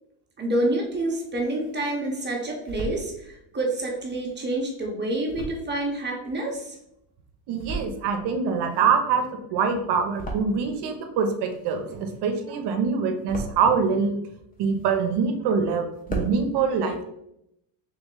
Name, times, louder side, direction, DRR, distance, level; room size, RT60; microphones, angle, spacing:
voice 1, 0.4-6.7, right 1 dB, 20° right, -1 dB, 0.9 m, -28 dB
sound 1, 0.8-1.8 2.3-3.0 3.7-7.0 7.4-8.2 8.5-10.9 11.2-12.4 12.8-13.8 14.3-15.3 15.6-15.7 15.9-16.4, right 2 dB, 15° left, 0.8 m, -37 dB
voice 2, 7.5-14.2 14.6-17.0, right 5 dB, 55° right, 6 dB, 0.8 m, -24 dB
3.3 x 3.0 x 3.7 m, 0.80 s
supercardioid pair, 115°, 49 cm